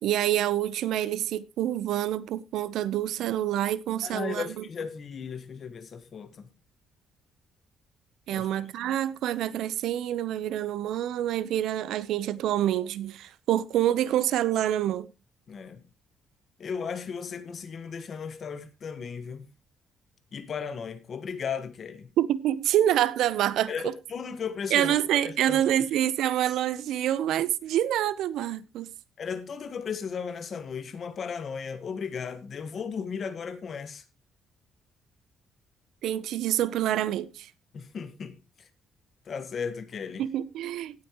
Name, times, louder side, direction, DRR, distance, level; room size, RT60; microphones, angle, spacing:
voice 1, 0.0-4.6 8.3-15.1 22.2-23.9 24.7-28.9 36.0-37.5 40.2-41.0, right 12 dB, 75° right, 0.7 m, -27 dB
voice 2, 4.0-6.5 8.3-8.5 15.5-15.8 16.6-19.5 20.3-22.1 23.7-25.6 29.2-34.0 37.7-38.7 39.2-40.2, left 6 dB, 35° left, 1.4 m, -36 dB
17.5 x 8.3 x 3.0 m
cardioid pair, 180°, 0 cm